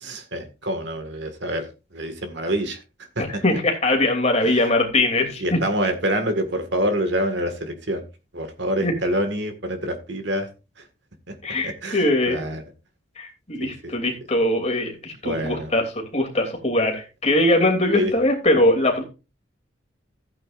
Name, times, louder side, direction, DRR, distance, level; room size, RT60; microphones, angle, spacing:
voice 1, 0.0-3.4 4.4-4.7 5.4-8.1 8.3-10.5 10.8-10.9 11.3-11.4 11.6-12.6 13.6-13.9 15.2-15.7 17.9-18.2, equal, 65° right, 7 dB, 1.9 m, -27 dB
voice 2, 3.2-5.6 8.8-8.9 11.4-12.4 13.2-19.0, left 1 dB, 35° left, 2 dB, 2.9 m, -21 dB
15.0 x 8.9 x 2.6 m, 0.30 s
head